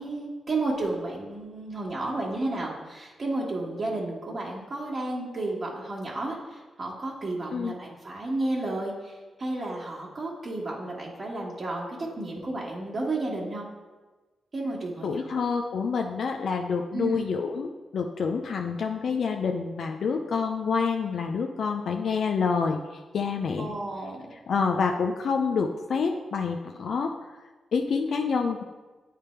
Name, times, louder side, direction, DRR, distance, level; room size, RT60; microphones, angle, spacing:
voice 1, 0.0-13.7 14.5-15.4 16.9-17.3 23.6-24.3, right 2 dB, 50° right, -3 dB, 1.4 m, -32 dB
voice 2, 15.0-23.7 24.5-27.1 27.7-28.6, left 5 dB, 70° left, 3 dB, 0.4 m, -27 dB
8.2 x 3.4 x 4.3 m, 1.3 s
supercardioid pair, 50°, 0 cm